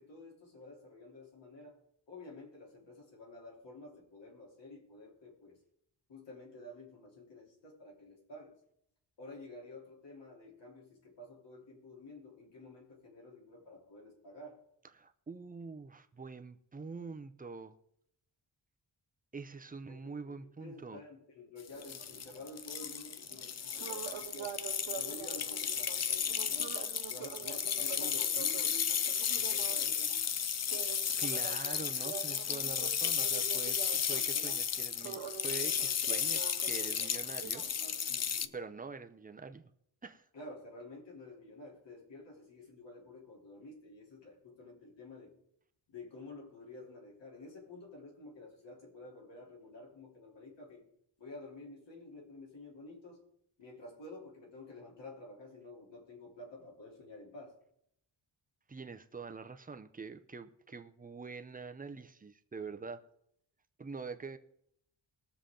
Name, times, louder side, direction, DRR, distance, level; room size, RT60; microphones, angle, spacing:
voice 1, 0.0-1.8 2.1-5.6 6.1-8.6 9.2-14.6 19.9-24.5 25.0-26.7 27.1-28.7 29.3-30.0 38.1-38.6 40.3-45.3 45.9-50.8 51.2-53.2 53.6-57.5, left 2 dB, 70° left, -2 dB, 3.6 m, -51 dB
voice 2, 15.0-17.7 19.3-21.0 31.2-37.6 38.5-39.7 40.0-40.2 58.7-63.0 63.8-64.4, right 4 dB, 20° right, 8 dB, 0.6 m, -45 dB
sound 1, 21.7-38.5, left 8 dB, 40° left, 0.4 m, -34 dB
sound 2, 21.7-38.4, right 8 dB, 75° right, 1.5 m, -47 dB
21.0 x 7.0 x 3.8 m, 0.73 s
wide cardioid pair, 170°, 45 cm